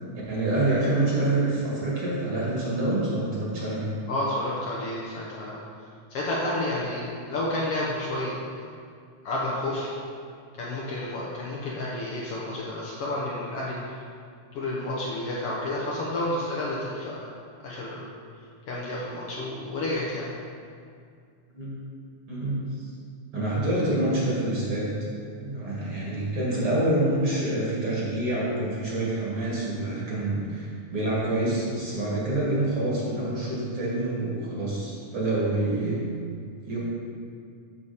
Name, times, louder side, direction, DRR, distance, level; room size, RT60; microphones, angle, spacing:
voice 1, 0.1-3.8 21.5-21.7 22.3-22.9 23.3-24.9 25.4-36.0 36.6-36.8, right 1 dB, 45° right, -6 dB, 2.5 m, -27 dB
voice 2, 4.1-5.6 6.1-8.3 9.2-9.9 10.6-14.0 14.5-17.2 17.6-18.0 18.7-20.3, left 1 dB, 65° left, -5 dB, 1.6 m, -30 dB
8.5 x 6.9 x 4.2 m, 2.2 s
omnidirectional pair, 3.4 m